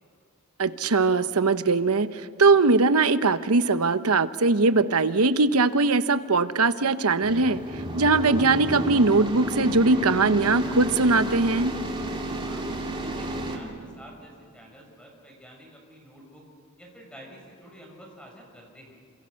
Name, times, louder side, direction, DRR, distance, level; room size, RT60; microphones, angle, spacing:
voice 1, 0.6-7.6 7.9-11.7, right 3 dB, 90° right, 11 dB, 1.0 m, -21 dB
sound 1, 7.2-13.6, right 1 dB, 25° right, 2.9 m, -32 dB
voice 2, 12.2-12.7 13.0-16.4 16.8-19.0, equal, 5° left, 0 dB, 6.3 m, -48 dB
28.0 x 27.0 x 6.5 m, 2.4 s
head